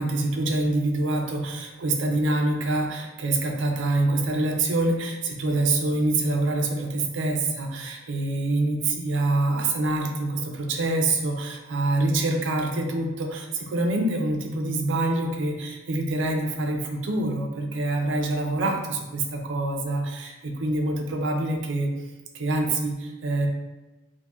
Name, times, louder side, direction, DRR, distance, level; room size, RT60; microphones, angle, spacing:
voice 1, 0.0-21.9 22.3-23.5, right 2 dB, 65° right, 2 dB, 0.5 m, -25 dB
4.4 x 2.1 x 2.3 m, 1.1 s
head